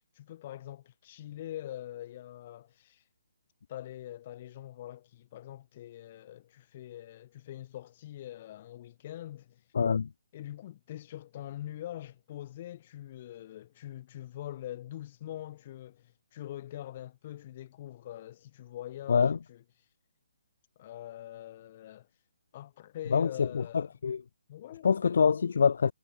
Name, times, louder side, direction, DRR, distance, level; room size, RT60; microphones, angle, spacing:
voice 1, 0.2-3.0 3.7-9.6 10.3-19.6 20.8-22.1 22.5-23.9 24.5-24.9, left 13 dB, 40° left, 2.9 m, -43 dB
voice 2, 9.7-10.1 19.1-19.4 23.1-24.2 24.8-25.9, left 6 dB, 60° left, 1.1 m, -25 dB
figure-of-eight pair, 135°, 0 cm